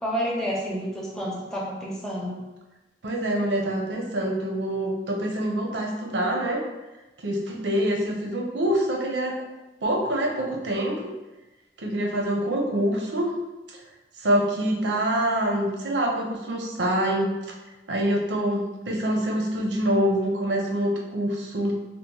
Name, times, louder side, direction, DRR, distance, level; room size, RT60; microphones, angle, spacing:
voice 1, 0.0-2.4, equal, 5° left, -4 dB, 0.5 m, -29 dB
voice 2, 3.0-6.6 7.2-9.4 9.8-11.0 11.8-13.4 13.7-13.8 14.2-17.6 17.9-21.8, right 1 dB, 90° right, 1 dB, 0.6 m, -25 dB
2.9 x 2.1 x 3.7 m, 1.1 s
head